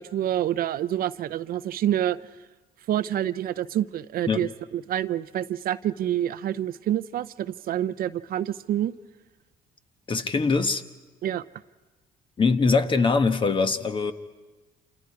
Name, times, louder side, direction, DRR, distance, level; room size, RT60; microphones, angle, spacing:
voice 1, 0.0-2.2 2.9-8.9 11.2-11.4, right 11 dB, 60° right, 0.6 m, -27 dB
voice 2, 10.1-10.8 12.4-14.1, left 4 dB, 30° left, 1.2 m, -22 dB
28.5 x 27.0 x 4.8 m
cardioid pair, 110°, 17 cm